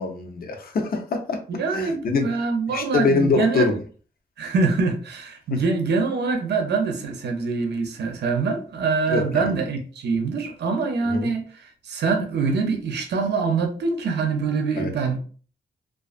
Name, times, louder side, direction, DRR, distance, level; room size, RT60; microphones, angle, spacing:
voice 1, 0.0-1.4 1.7-2.2 2.7-3.8 5.5-5.6 9.1-9.4 11.0-11.3 14.7-14.9, left 4 dB, 60° left, 0.6 m, -24 dB
voice 2, 1.5-3.7 4.4-15.2, right 4 dB, 90° right, 0.5 m, -24 dB
2.4 x 2.3 x 2.4 m
wide cardioid pair, 105°, 17 cm